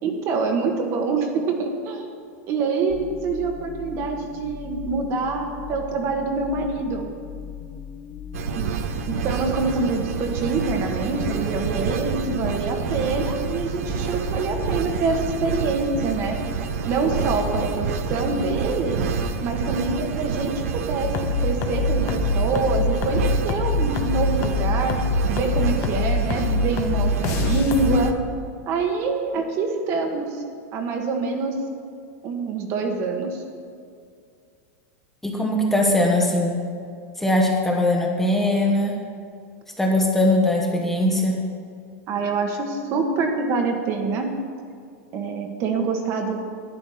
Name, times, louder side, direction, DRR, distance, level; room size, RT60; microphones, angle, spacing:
voice 1, 0.0-2.1 2.5-7.0 8.5-8.7 9.1-16.4 16.8-19.0 19.4-20.5 20.9-25.0 25.3-28.1 28.7-30.3 30.7-31.6 32.2-33.4 42.1-44.3 45.1-46.4, right 4 dB, 35° right, 3 dB, 1.5 m, -25 dB
sound 1, 2.9-19.3, left 8 dB, 20° left, 0.6 m, -38 dB
sound 2, 8.3-28.1, right 6 dB, 80° right, 1.0 m, -29 dB
sound 3, 21.0-28.0, left 3 dB, 40° left, 1.1 m, -24 dB
voice 2, 35.2-36.6 37.2-39.0 39.8-41.4, left 1 dB, 5° left, -1 dB, 1.2 m, -20 dB
11.5 x 9.3 x 5.7 m, 2.3 s
supercardioid pair, 150°, 8 cm